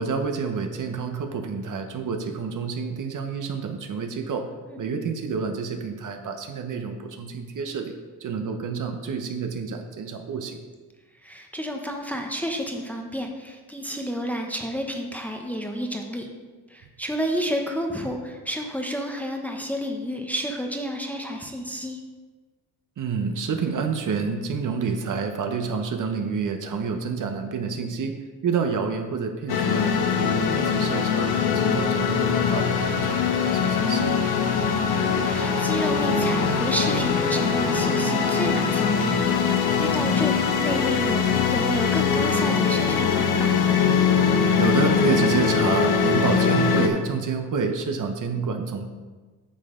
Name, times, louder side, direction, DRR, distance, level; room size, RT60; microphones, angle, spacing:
voice 1, 0.0-4.5 4.8-10.6 23.0-28.2 28.4-34.2 44.6-48.9, right 5 dB, 50° right, 5 dB, 1.0 m, -28 dB
voice 2, 11.2-16.3 16.7-22.0 34.6-43.6, equal, 5° left, 2 dB, 0.8 m, -31 dB
sound 1, 29.5-46.9, left 6 dB, 65° left, 1.1 m, -22 dB
8.8 x 6.7 x 3.7 m, 1.3 s
cardioid pair, 110°, 40 cm